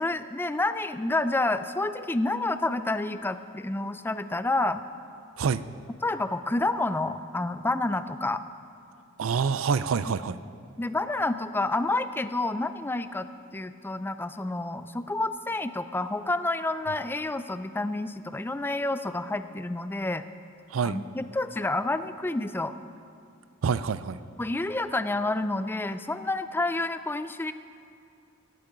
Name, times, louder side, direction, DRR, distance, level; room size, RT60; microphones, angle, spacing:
voice 1, 0.0-4.8 6.0-8.4 10.8-13.3 13.5-20.2 20.8-22.7 24.4-27.5, left 2 dB, 10° left, 11 dB, 0.4 m, -29 dB
voice 2, 9.2-10.4 20.7-21.0 23.6-24.2, right 6 dB, 80° right, 14 dB, 0.4 m, -26 dB
17.5 x 12.0 x 3.9 m, 2.5 s
head